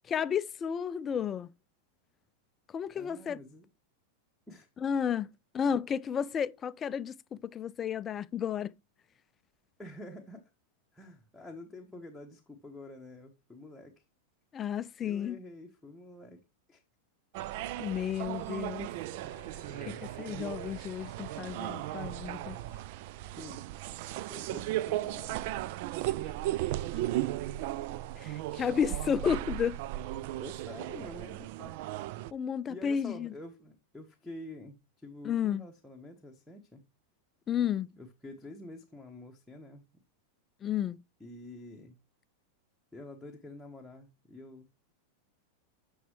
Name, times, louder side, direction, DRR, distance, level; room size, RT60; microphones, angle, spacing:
voice 1, 0.0-1.5 2.7-3.4 4.8-5.3 5.5-8.7 14.5-15.4 17.8-18.9 20.2-22.6 28.2-29.8 32.3-33.3 35.2-35.6 37.5-37.9 40.6-41.0, left 8 dB, 25° left, 0.4 m, -32 dB
voice 2, 2.9-3.7 4.5-4.7 9.8-10.5 10.9-14.0 15.0-16.4 16.7-16.8 18.0-18.1 19.7-20.1 23.4-23.6 24.2-25.6 27.2-27.4 27.9-28.0 30.3-31.7 32.7-36.8 37.9-39.8 41.2-42.0 42.9-44.7, left 1 dB, 5° left, 1.2 m, -48 dB
sound 1, 17.3-32.3, right 15 dB, 50° right, 0.4 m, -36 dB
sound 2, 17.5-22.8, right 2 dB, 70° right, 3.5 m, -53 dB
9.2 x 6.4 x 3.2 m
figure-of-eight pair, 90°, 0 cm